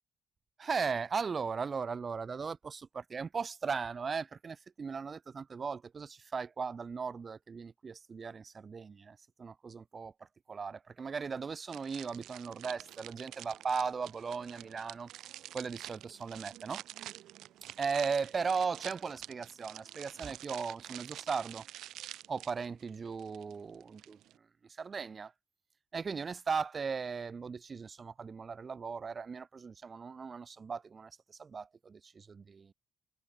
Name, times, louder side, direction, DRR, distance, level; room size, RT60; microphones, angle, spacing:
voice 1, 0.6-15.1 15.5-16.8 17.8-21.7 22.3-25.3 25.9-32.7, right 5 dB, 25° right, 0.4 m, -37 dB
sound 1, 11.7-24.4, right 13 dB, 75° right, 0.7 m, -48 dB
cardioid pair, 165°, 0 cm